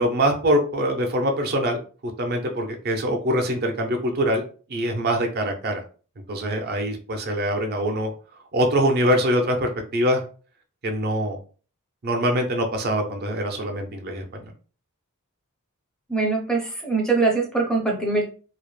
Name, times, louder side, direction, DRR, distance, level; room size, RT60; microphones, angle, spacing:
voice 1, 0.0-4.4 4.7-5.8 6.3-8.1 8.5-10.2 10.8-11.4 12.0-14.5, equal, 45° right, 3 dB, 0.5 m, -24 dB
voice 2, 16.1-18.3, right 3 dB, 5° left, 0 dB, 0.5 m, -23 dB
2.3 x 2.0 x 3.1 m, 0.38 s
head